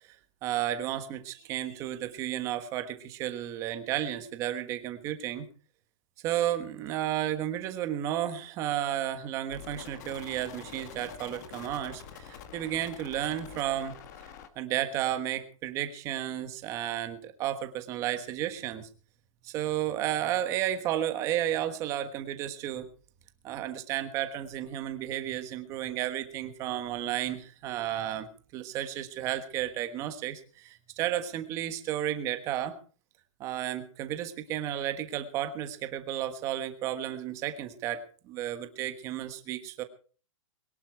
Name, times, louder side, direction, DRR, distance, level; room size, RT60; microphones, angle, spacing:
voice 1, 0.4-5.5 6.2-14.0 14.6-18.9 19.4-22.9 23.4-28.3 28.5-32.8 33.4-39.8, right 12 dB, 15° right, 9 dB, 1.4 m, -32 dB
sound 1, 9.5-14.5, left 8 dB, 30° left, 1.7 m, -46 dB
22.0 x 11.5 x 4.7 m, 0.41 s
hypercardioid pair, 180°, 18 cm